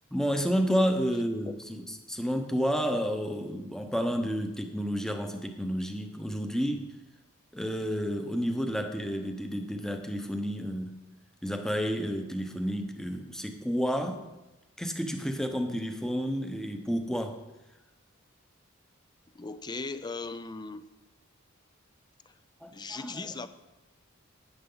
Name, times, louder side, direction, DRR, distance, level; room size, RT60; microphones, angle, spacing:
voice 1, 0.1-6.9 7.5-11.0 11.4-14.2 14.8-17.4 22.6-23.3, equal, 5° left, 5 dB, 0.9 m, -30 dB
voice 2, 19.3-20.9 22.3-22.4 22.7-23.5, left 3 dB, 20° left, 12 dB, 0.5 m, -38 dB
12.5 x 9.5 x 3.9 m, 1.0 s
head